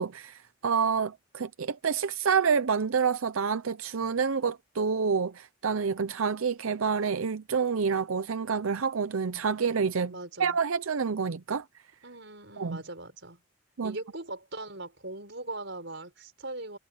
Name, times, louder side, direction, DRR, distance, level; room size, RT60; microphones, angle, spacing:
voice 1, 0.0-10.1 10.4-11.7 12.6-12.8 13.8-14.0, right 6 dB, 85° right, 0.6 m, -28 dB
voice 2, 10.0-10.6 12.0-13.4 13.8-16.8, right 2 dB, 60° right, 6.4 m, -40 dB
head